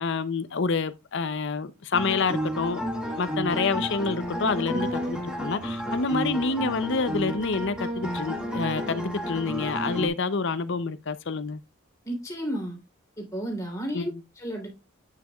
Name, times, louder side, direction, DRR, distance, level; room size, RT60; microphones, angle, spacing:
voice 1, 0.0-2.8 3.1-11.6 13.9-14.2, left 4 dB, 55° left, 0.6 m, -28 dB
sound 1, 1.9-10.1, equal, 5° right, 1.8 m, -31 dB
voice 2, 12.0-12.8 13.2-14.1 14.4-14.7, equal, 15° left, 3.1 m, -32 dB
8.4 x 6.6 x 2.3 m
head